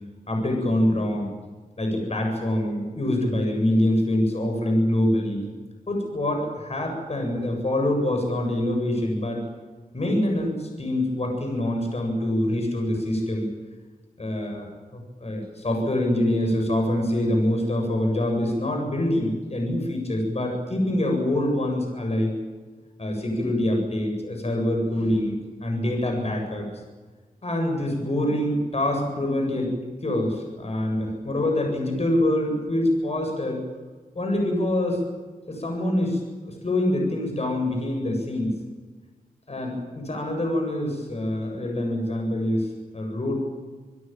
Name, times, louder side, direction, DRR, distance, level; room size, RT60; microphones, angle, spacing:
voice 1, 0.3-1.3 1.8-5.5 5.9-9.4 9.9-13.5 14.2-14.7 14.9-22.3 23.0-26.7 27.4-29.7 30.0-33.6 34.1-35.0 35.5-38.6 39.5-42.7 42.9-43.4, left 1 dB, 45° left, 3 dB, 7.9 m, -25 dB
27.5 x 17.0 x 9.2 m, 1.4 s
wide cardioid pair, 80°, 15 cm